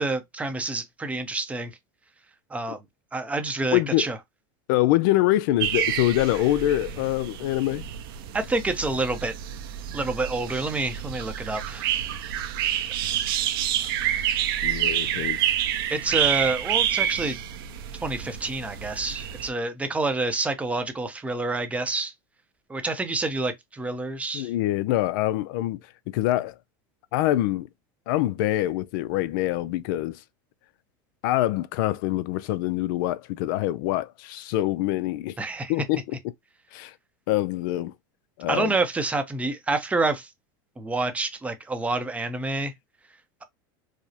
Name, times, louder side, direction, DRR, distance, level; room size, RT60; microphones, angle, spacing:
voice 1, 0.0-1.7 2.5-2.8 3.1-4.2 8.3-9.3 9.9-11.9 15.9-17.4 18.0-22.1 22.7-24.5 35.4-35.7 38.5-40.3 40.8-42.7, right 3 dB, 10° right, 0.6 m, -28 dB
voice 2, 3.7-4.1 4.7-7.8 13.8-13.9 14.6-15.5 24.3-25.8 26.1-26.5 27.1-27.7 28.1-30.2 31.2-35.4 35.7-36.2 36.7-36.9 37.3-37.9 38.4-38.7, left 15 dB, 65° left, 0.4 m, -25 dB
sound 1, 5.6-19.5, right 10 dB, 80° right, 0.7 m, -28 dB
4.8 x 2.0 x 2.8 m
supercardioid pair, 135°, 12 cm